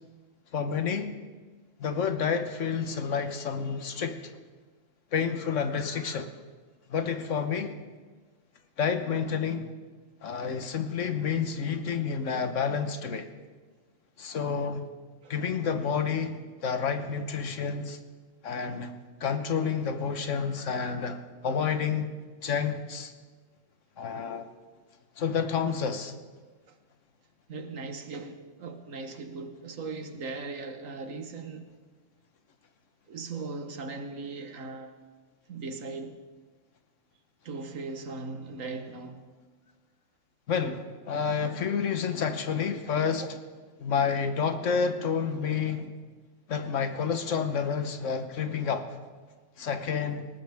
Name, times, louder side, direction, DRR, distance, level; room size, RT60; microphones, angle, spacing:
voice 1, 0.5-1.1 1.8-4.2 5.1-6.3 6.9-7.8 8.8-9.7 10.2-13.3 14.2-14.9 15.3-18.0 18.4-18.9 19.2-22.1 22.4-23.1 24.0-24.5 25.2-26.1 40.5-43.3 43.8-45.9 46.5-48.9 49.6-50.3, left 6 dB, 70° left, 1.4 m, -29 dB
voice 2, 27.5-31.7 33.1-35.0 35.5-36.2 37.4-39.3, right 3 dB, 85° right, 1.6 m, -38 dB
19.5 x 18.5 x 3.5 m
omnidirectional pair, 1.3 m